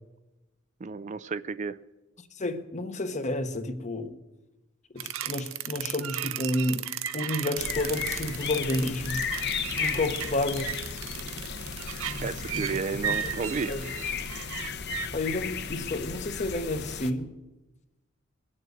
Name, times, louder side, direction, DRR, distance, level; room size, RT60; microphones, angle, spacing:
voice 1, 0.8-1.8 12.2-13.7, right 5 dB, 35° right, 0.4 m, -32 dB
voice 2, 2.4-4.1 4.9-6.8 7.1-9.2 9.8-10.7 12.1-12.8 13.1-13.2 13.7-13.9 15.1-17.3, left 2 dB, 35° left, 1.0 m, -31 dB
sound 1, 5.0-15.1, right 9 dB, 75° right, 0.7 m, -35 dB
sound 2, 7.6-17.1, left 6 dB, 55° left, 0.9 m, -35 dB
21.5 x 7.6 x 7.9 m
head